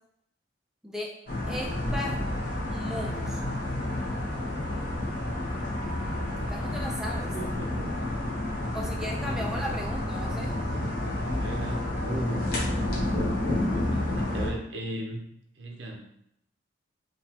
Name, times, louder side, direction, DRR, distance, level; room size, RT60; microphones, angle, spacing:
sound 1, 1.3-14.5, left 1 dB, 45° left, 0.8 m, -30 dB
voice 1, 1.5-2.2 2.7-3.4 6.5-7.3 8.7-10.6, left 1 dB, 5° right, -1 dB, 0.4 m, -36 dB
sound 2, 3.0-5.7, left 1 dB, 75° left, 0.9 m, -41 dB
voice 2, 7.1-7.9 8.4-8.5 9.2-9.9 10.4-11.0 11.3-13.5 13.7-15.3 15.6-16.0, right 1 dB, 65° right, 0 dB, 0.6 m, -39 dB
3.9 x 2.4 x 2.8 m, 0.74 s
head